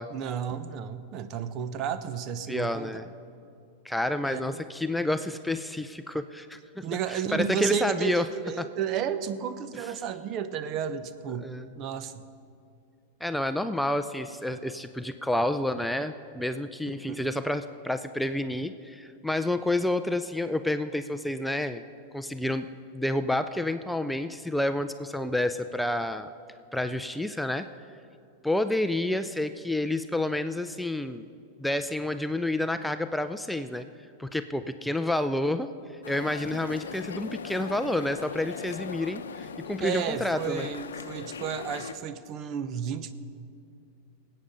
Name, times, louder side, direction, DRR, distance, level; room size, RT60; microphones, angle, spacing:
voice 1, 0.1-2.9 4.2-4.5 6.8-12.2 16.9-17.2 39.8-43.1, right 8 dB, 45° right, 11 dB, 0.8 m, -32 dB
voice 2, 2.5-3.1 3.8-8.3 8.6-8.7 11.4-11.7 13.2-21.8 22.1-22.7 22.9-26.3 26.7-27.7 28.4-31.3 31.6-33.9 34.2-35.7 36.1-40.7, left 1 dB, 5° left, 10 dB, 0.4 m, -29 dB
sound 1, 36.0-41.9, left 6 dB, 90° left, 0.6 m, -39 dB
19.0 x 8.6 x 5.2 m, 2.5 s
hypercardioid pair, 110°, 0 cm